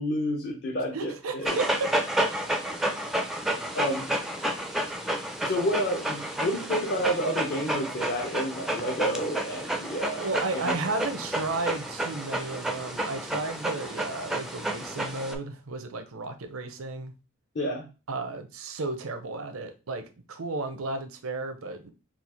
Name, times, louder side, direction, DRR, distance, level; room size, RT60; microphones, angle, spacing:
voice 1, 0.0-1.6 3.7-4.1 5.4-10.3 10.5-10.9 17.5-17.9, equal, 50° left, 0.8 m, -30 dB
voice 2, 0.9-1.9 10.2-17.1 18.1-21.9, right 3 dB, 90° right, 0.7 m, -33 dB
Dog, 1.4-15.4, right 1 dB, ahead, 0.4 m, -31 dB
4.2 x 2.4 x 4.3 m
head